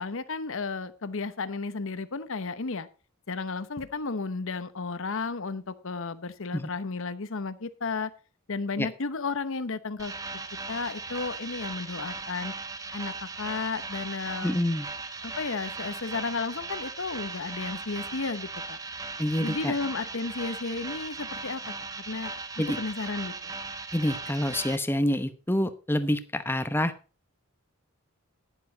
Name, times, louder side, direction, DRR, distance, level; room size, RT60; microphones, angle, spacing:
voice 1, 0.0-2.9 3.3-8.1 8.5-10.1 10.7-12.5 12.9-14.6 15.2-18.8 19.4-23.6, left 4 dB, 65° left, 0.9 m, -33 dB
sound 1, 10.0-24.8, right 3 dB, 15° right, 0.9 m, -38 dB
voice 2, 14.4-14.9 19.2-19.7 22.6-22.8 23.9-26.9, left 1 dB, 10° left, 0.9 m, -27 dB
11.0 x 10.0 x 4.0 m
head